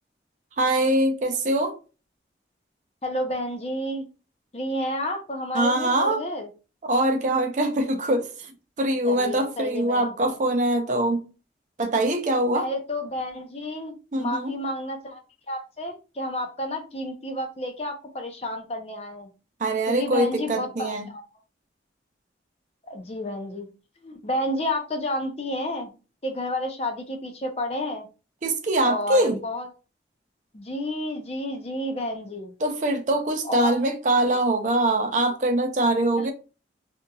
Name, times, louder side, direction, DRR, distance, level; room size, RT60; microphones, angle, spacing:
voice 1, 0.6-1.8 5.5-6.2 6.8-8.5 8.8-11.2 11.8-12.7 14.1-14.5 19.6-21.1 28.4-29.4 32.6-36.3, right 1 dB, 45° right, 0.5 m, -23 dB
voice 2, 3.0-4.1 4.5-6.5 9.1-10.4 12.5-15.2 15.5-19.3 19.9-21.2 22.8-23.7 24.0-25.9 26.2-28.1 28.8-29.7 30.5-32.5 33.4-33.9 36.2-36.3, left 1 dB, 35° left, 0.6 m, -31 dB
2.8 x 2.6 x 2.3 m
head